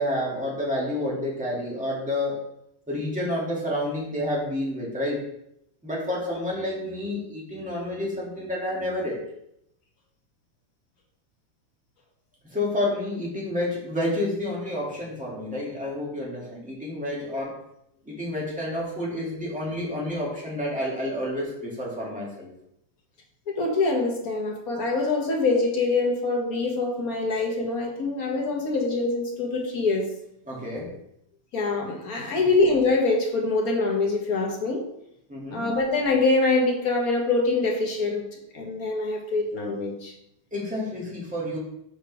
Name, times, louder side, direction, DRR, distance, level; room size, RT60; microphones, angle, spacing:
voice 1, 0.0-2.4 2.9-5.2 5.8-9.2 12.5-17.6 18.0-22.5 30.5-30.9 32.3-32.4 35.3-35.7 40.5-41.6, left 1 dB, 5° right, -6 dB, 1.8 m, -29 dB
voice 2, 23.5-30.1 31.5-34.8 35.5-38.2 38.5-40.1, left 3 dB, 50° left, 1 dB, 1.2 m, -24 dB
5.1 x 5.0 x 4.7 m, 0.77 s
omnidirectional pair, 2.4 m